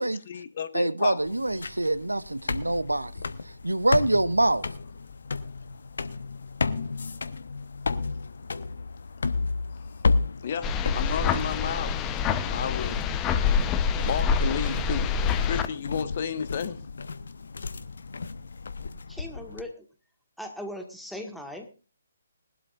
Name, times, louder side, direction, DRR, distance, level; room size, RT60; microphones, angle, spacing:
voice 1, 0.0-1.4 9.7-9.9 10.4-12.0 12.4-13.0 14.0-16.8, left 7 dB, 45° left, 1.4 m, -33 dB
voice 2, 0.7-3.1 3.6-4.6, right 2 dB, 85° right, 0.7 m, -25 dB
sound 1, 1.2-19.6, left 4 dB, 65° left, 1.0 m, -33 dB
sound 2, 10.6-15.7, left 6 dB, 20° left, 0.8 m, -26 dB
voice 3, 19.1-19.9 20.4-21.7, left 1 dB, ahead, 1.8 m, -39 dB
21.0 x 12.0 x 2.5 m
figure-of-eight pair, 140°, 0 cm